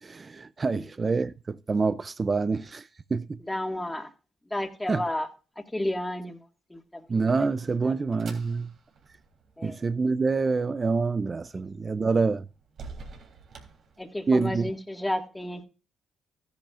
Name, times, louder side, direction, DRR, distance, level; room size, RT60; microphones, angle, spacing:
voice 1, 0.0-3.4 4.9-5.0 7.1-8.7 9.6-12.4 14.3-14.7, right 4 dB, 30° right, 0.5 m, -26 dB
voice 2, 3.5-4.1 4.5-5.3 5.7-6.4 6.7-7.1 7.8-7.9 9.6-9.8 14.0-15.6, left 1 dB, 10° left, 2.0 m, -31 dB
sound 1, 7.9-14.5, right 4 dB, 65° right, 3.4 m, -50 dB
14.0 x 10.5 x 2.5 m
cardioid pair, 90°, 0 cm